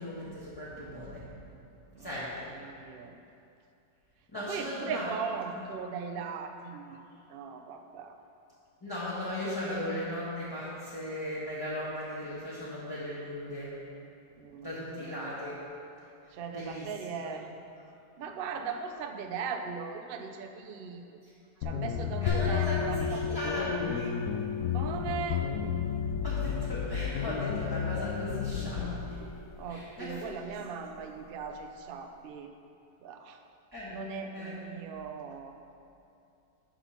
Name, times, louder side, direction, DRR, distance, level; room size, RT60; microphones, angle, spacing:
voice 1, 0.0-1.5 2.0-2.5 4.3-5.1 5.5-5.7 8.8-13.8 14.6-15.6 16.5-16.9 17.2-17.4 21.2-21.3 22.2-24.1 26.2-29.2 29.7-30.5 33.7-34.6, left 1 dB, 15° left, -9 dB, 1.3 m, -37 dB
voice 2, 2.6-3.2 4.3-7.0 7.3-8.2 14.4-15.4 16.3-17.5 18.2-21.2 21.6-23.9 24.7-25.5 29.6-32.5 33.0-33.4 33.9-35.6, right 6 dB, 80° right, 5 dB, 0.5 m, -39 dB
sound 1, 21.6-29.0, left 7 dB, 85° left, 1.2 m, -33 dB
sound 2, 22.3-31.6, left 5 dB, 65° left, 1.0 m, -39 dB
7.6 x 6.0 x 5.6 m, 2.6 s
omnidirectional pair, 1.7 m